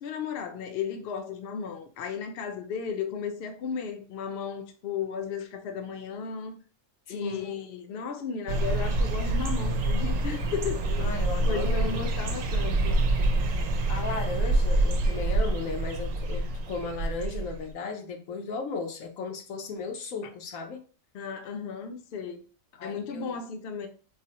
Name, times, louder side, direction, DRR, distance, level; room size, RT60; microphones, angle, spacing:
voice 1, 0.0-6.5 7.1-11.1 11.4-13.0 21.1-22.4 22.8-23.9, left 6 dB, 60° left, 0.7 m, -35 dB
voice 2, 7.1-7.5 11.0-12.1 13.9-20.8 22.7-23.4, left 4 dB, 90° left, 1.1 m, -35 dB
sound 1, 8.5-17.6, right 2 dB, 80° right, 1.0 m, -26 dB
4.8 x 2.1 x 2.8 m
omnidirectional pair, 1.4 m